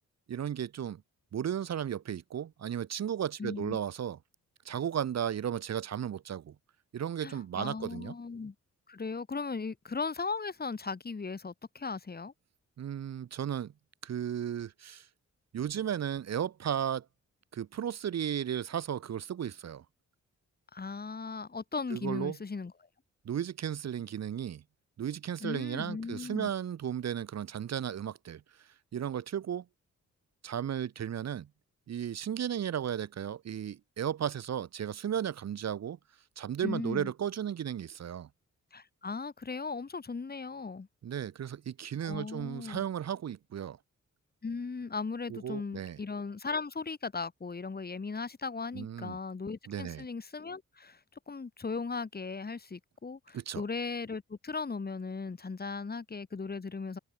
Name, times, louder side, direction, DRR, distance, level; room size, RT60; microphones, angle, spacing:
voice 1, 0.3-1.0 1.3-4.2 4.6-6.5 6.9-8.1 12.8-13.7 14.0-15.1 15.5-17.1 17.5-19.8 21.9-22.4 23.2-24.6 25.0-29.6 30.4-31.5 31.9-36.0 36.4-38.3 41.0-43.8 45.3-46.0 48.7-49.2 49.7-50.1 53.3-53.6, right 9 dB, 60° right, 1.1 m, -35 dB
voice 2, 3.4-3.8 7.2-8.5 8.9-12.3 20.7-22.7 25.4-26.5 36.6-37.1 38.7-40.9 42.0-42.8 44.4-51.0 51.3-57.0, left 4 dB, 30° left, 2.8 m, -37 dB
cardioid pair, 95°, 30 cm